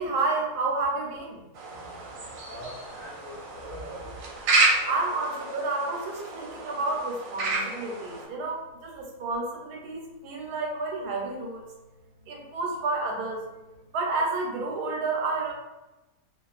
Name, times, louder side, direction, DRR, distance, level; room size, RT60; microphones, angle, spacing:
voice 1, 0.0-1.4 4.9-11.6 12.3-13.5 13.9-15.5, right 3 dB, 90° right, -1 dB, 1.1 m, -30 dB
sound 1, 1.5-8.2, right 2 dB, 70° right, 0.9 m, -30 dB
voice 2, 1.7-2.2 2.5-4.2 8.8-8.9, equal, 45° left, -8 dB, 0.8 m, -43 dB
2.4 x 2.3 x 2.3 m, 1.0 s
omnidirectional pair, 1.6 m